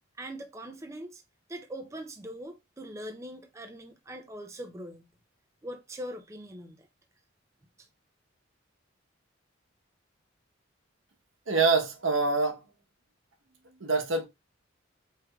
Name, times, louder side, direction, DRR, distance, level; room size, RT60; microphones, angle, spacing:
voice 1, 0.2-1.2 1.5-5.1 5.6-6.9 7.8-7.9, equal, 15° right, 0.4 m, -42 dB
voice 2, 11.5-12.6 13.8-14.3, right 4 dB, 80° right, 1.0 m, -25 dB
4.7 x 3.3 x 2.3 m
head